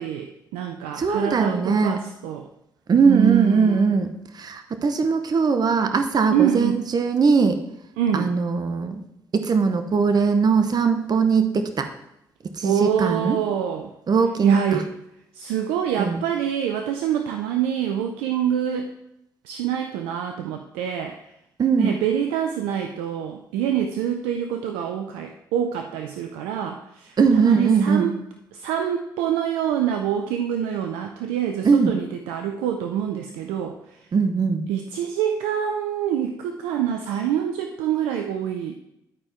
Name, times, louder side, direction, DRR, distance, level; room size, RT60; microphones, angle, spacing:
voice 1, 0.0-2.5 3.0-3.9 6.3-6.8 8.0-8.3 12.6-13.9 14.4-14.9 15.3-18.9 19.4-21.2 21.8-28.1 28.5-34.1 34.7-38.7, right 9 dB, 85° right, 5 dB, 0.5 m, -26 dB
voice 2, 1.0-2.0 2.9-4.1 4.3-7.6 8.1-9.0 9.3-11.9 12.5-13.4 14.1-14.8 16.0-16.2 21.6-22.0 27.2-28.1 31.6-32.0 34.1-34.6, right 5 dB, 45° right, 8 dB, 0.8 m, -20 dB
11.0 x 4.4 x 4.4 m, 0.82 s
hypercardioid pair, 45°, 9 cm